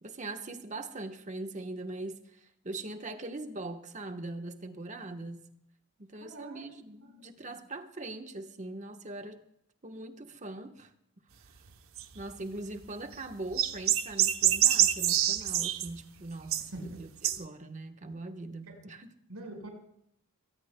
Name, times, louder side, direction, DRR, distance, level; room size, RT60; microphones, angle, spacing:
voice 1, 0.0-5.5 6.0-9.4 9.8-10.9 12.1-19.1, right 2 dB, 35° right, 1.2 m, -41 dB
voice 2, 6.2-6.7 7.5-7.6 16.7-17.0 18.7-18.8 19.3-19.7, right 2 dB, 90° right, 5.1 m, -43 dB
sound 1, 12.0-12.2 12.8-12.9 13.1-13.2 13.5-15.9 16.5-16.9 17.2-17.4, right 11 dB, 70° right, 0.9 m, -26 dB
24.0 x 18.5 x 2.2 m
head